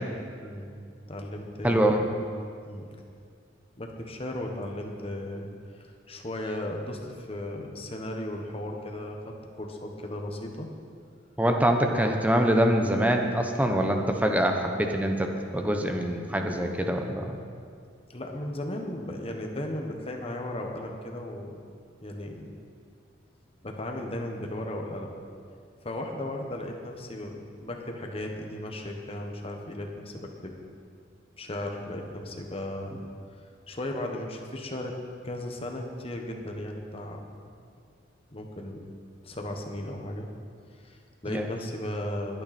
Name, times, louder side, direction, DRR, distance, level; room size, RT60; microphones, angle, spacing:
voice 1, 0.4-0.8 1.1-2.0 2.6-2.9 3.8-5.5 5.8-10.7 18.1-21.6 22.0-22.5 23.6-25.1 25.8-30.5 31.4-33.0 33.7-35.0 35.2-37.2 38.3-38.8 39.2-40.3 40.8-42.4, left 1 dB, 30° left, 2 dB, 1.3 m, -36 dB
voice 2, 1.6-2.0 11.4-17.4 41.3-41.4, right 1 dB, 10° right, 3 dB, 0.9 m, -24 dB
21.0 x 9.2 x 4.4 m, 2.3 s
head